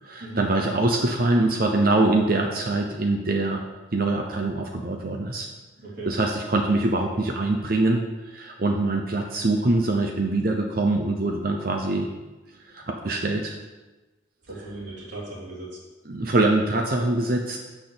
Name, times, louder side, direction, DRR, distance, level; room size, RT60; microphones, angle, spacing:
voice 1, 0.0-3.6 3.9-5.5 6.0-12.1 12.7-13.5 16.1-17.6, right 2 dB, 50° right, 2 dB, 0.7 m, -24 dB
voice 2, 5.8-6.1 14.5-15.8, right 2 dB, 65° right, -7 dB, 2.8 m, -37 dB
6.5 x 5.9 x 6.8 m, 1.1 s
head